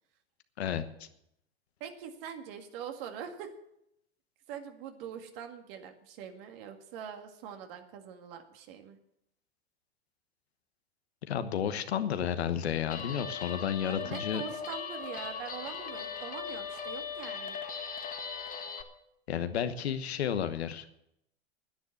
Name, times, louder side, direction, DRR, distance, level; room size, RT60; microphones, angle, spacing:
voice 1, 0.6-1.1 11.3-14.4 19.3-20.9, left 9 dB, 90° left, 10 dB, 1.2 m, -32 dB
voice 2, 1.8-3.5 4.5-9.0 13.8-17.6, right 8 dB, 65° right, 5 dB, 2.0 m, -43 dB
Guitar, 12.9-18.8, left 6 dB, 25° left, 1.5 m, -39 dB
10.0 x 9.8 x 7.7 m, 0.79 s
hypercardioid pair, 105°, 31 cm